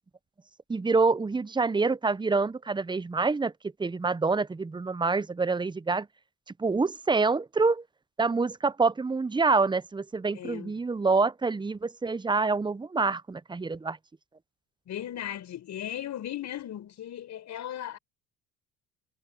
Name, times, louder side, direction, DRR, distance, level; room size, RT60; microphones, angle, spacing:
voice 1, 0.7-3.5 3.8-6.1 6.6-7.8 8.2-14.0, right 4 dB, 15° right, 0.8 m, -26 dB
voice 2, 10.3-10.7 14.9-18.0, left 11 dB, 55° left, 5.5 m, -37 dB
supercardioid pair, 75°, 34 cm